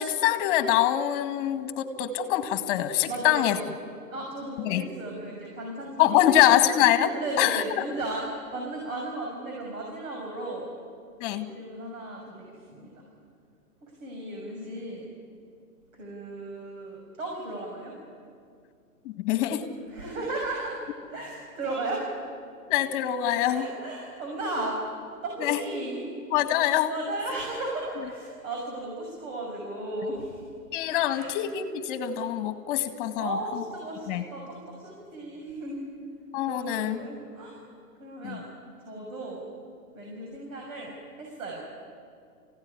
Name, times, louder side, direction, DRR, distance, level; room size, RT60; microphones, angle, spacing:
voice 1, 0.0-3.6 4.6-4.9 6.0-7.6 11.2-11.5 19.0-19.6 22.7-23.7 25.4-25.6 26.3-26.9 30.7-33.6 34.1-34.2 36.3-37.0 38.2-38.4, left 12 dB, 35° left, 8 dB, 2.0 m, -24 dB
voice 2, 3.0-3.7 4.1-6.5 7.1-8.2 8.5-10.7 11.5-13.1 13.8-15.0 15.9-17.9 19.9-20.8 21.1-22.1 23.5-24.8 25.2-26.0 26.9-30.4 31.1-31.3 33.1-35.8 36.4-37.6 38.0-38.5 38.8-39.4 39.9-41.7, right 2 dB, 55° right, -1 dB, 6.5 m, -35 dB
27.5 x 17.0 x 9.9 m, 2.3 s
hypercardioid pair, 150°, 47 cm